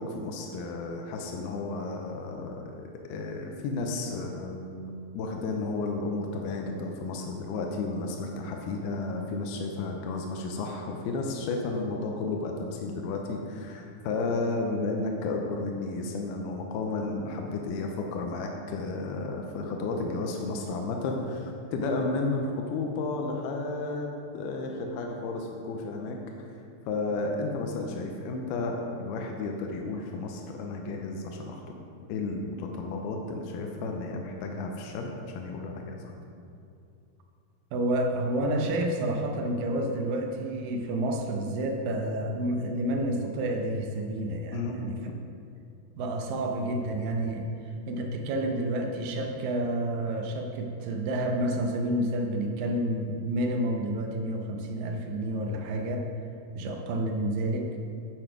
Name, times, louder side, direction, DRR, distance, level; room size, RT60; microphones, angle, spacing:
voice 1, 0.0-26.2 26.9-31.8 32.1-36.0 44.5-44.9, left 3 dB, 85° left, 1 dB, 2.6 m, -32 dB
voice 2, 37.7-45.0 46.0-47.5 47.9-56.1 56.5-57.7, right 1 dB, 75° right, 2 dB, 2.2 m, -29 dB
9.0 x 8.0 x 5.0 m, 2.5 s
omnidirectional pair, 4.6 m